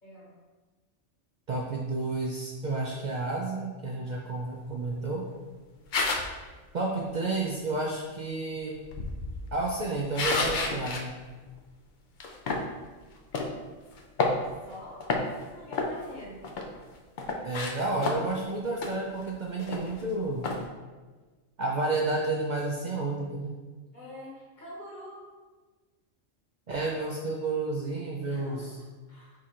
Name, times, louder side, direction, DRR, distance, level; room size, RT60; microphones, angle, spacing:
voice 1, 0.0-0.3 14.3-15.0 15.4-16.4 23.9-25.2 28.2-29.3, left 1 dB, 40° left, -6 dB, 1.1 m, -45 dB
voice 2, 1.5-5.2 6.7-8.8 9.5-11.1 17.4-20.5 21.6-23.5 26.7-28.8, right 2 dB, 65° right, -2 dB, 0.4 m, -31 dB
sound 1, 5.9-6.4 8.8-11.0 11.5-11.6 12.2-12.7 13.3-13.5 14.0-14.7 15.0-15.4 15.7-16.8 17.2-18.4 18.8-18.9 19.3-19.4 19.6-20.0 20.4-20.6, left 3 dB, 70° left, 0.4 m, -30 dB
4.9 x 2.4 x 4.3 m, 1.3 s
omnidirectional pair, 1.3 m